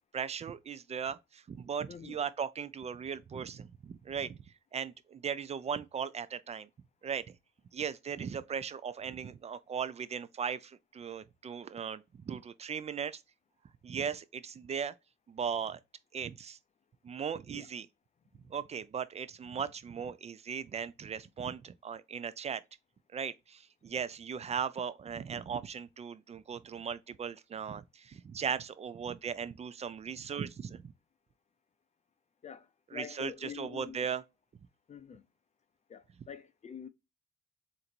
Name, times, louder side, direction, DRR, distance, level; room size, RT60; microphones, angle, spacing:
voice 1, 0.1-4.4 4.7-6.7 7.0-7.2 7.7-13.2 13.8-14.9 15.3-15.8 16.1-16.6 17.0-17.9 18.5-22.6 23.1-30.9 32.9-34.2, right 7 dB, 35° right, 0.4 m, -38 dB
voice 2, 32.9-34.0 34.9-35.2 35.9-36.9, left 7 dB, 35° left, 0.5 m, -46 dB
3.9 x 2.6 x 4.4 m
cardioid pair, 90°, 20 cm